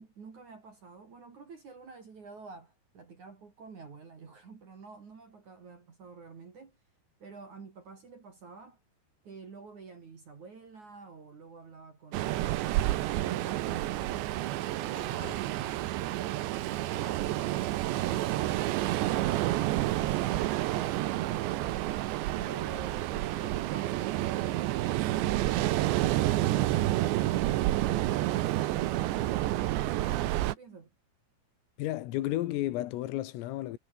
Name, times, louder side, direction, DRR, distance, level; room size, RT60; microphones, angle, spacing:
voice 1, 0.0-6.8 7.2-8.8 9.2-14.3 22.3-30.9, right 4 dB, 40° right, 4.2 m, -49 dB
Ocean, 12.1-30.5, right 15 dB, 70° right, 3.2 m, -29 dB
voice 2, 31.8-33.8, left 15 dB, 90° left, 4.1 m, -32 dB
omnidirectional pair, 5.8 m